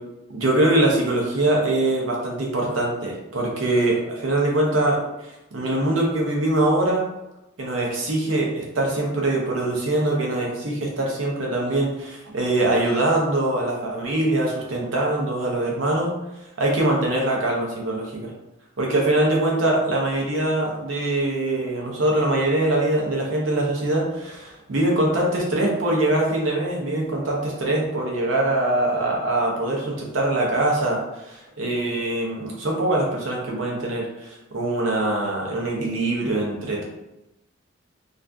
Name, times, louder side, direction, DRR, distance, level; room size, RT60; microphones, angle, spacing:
voice 1, 0.3-5.0 5.5-7.1 7.6-16.1 16.6-18.3 18.8-36.8, right 1 dB, 85° right, -1 dB, 0.6 m, -23 dB
2.4 x 2.4 x 2.2 m, 0.95 s
head